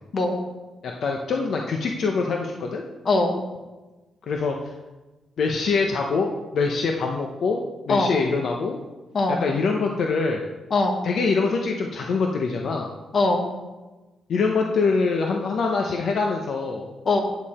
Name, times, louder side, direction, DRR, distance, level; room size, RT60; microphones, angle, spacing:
voice 1, 0.8-2.8 4.3-4.6 5.4-7.6 7.9-8.8 9.3-10.4 11.0-12.9 14.3-16.9, left 4 dB, 60° left, 2 dB, 0.9 m, -24 dB
voice 2, 3.0-3.4 7.9-8.1 9.1-9.4 10.7-11.0 13.1-13.5 17.0-17.2, left 3 dB, 40° left, 3 dB, 1.5 m, -21 dB
9.5 x 8.5 x 4.3 m, 1.1 s
cardioid pair, 135°, 0 cm